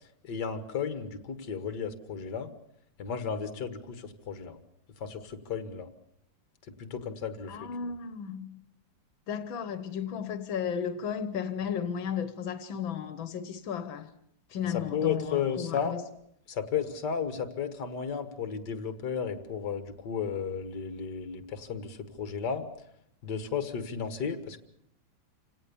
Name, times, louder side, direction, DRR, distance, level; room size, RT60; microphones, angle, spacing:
voice 1, 0.2-2.5 3.0-4.6 5.0-5.9 6.8-7.7 14.6-16.0 16.5-22.6 23.2-24.6, left 7 dB, 60° left, 2.2 m, -33 dB
voice 2, 7.5-8.6 9.3-14.1 14.5-16.0, left 7 dB, 90° left, 1.9 m, -34 dB
28.0 x 17.5 x 7.1 m
omnidirectional pair, 2.1 m